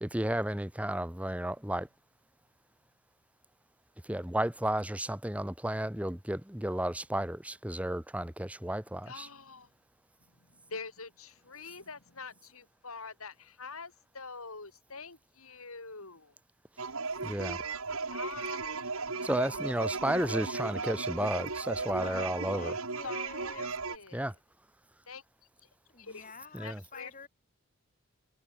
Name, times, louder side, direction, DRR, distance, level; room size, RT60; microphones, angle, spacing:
voice 1, 0.0-1.9 4.0-9.3 17.2-17.6 19.2-22.7 24.1-24.3 26.5-26.8, right 1 dB, 5° right, 0.8 m, -33 dB
voice 2, 9.1-9.7 10.5-16.3 18.1-18.8 23.0-23.3 23.5-24.3 25.1-25.2 26.0-26.3 26.6-27.1, left 4 dB, 75° left, 4.5 m, -45 dB
sound 1, 16.8-24.0, right 4 dB, 75° right, 2.5 m, -36 dB
voice 3, 19.2-20.0 21.8-23.7 25.9-27.3, left 4 dB, 35° left, 3.4 m, -49 dB
head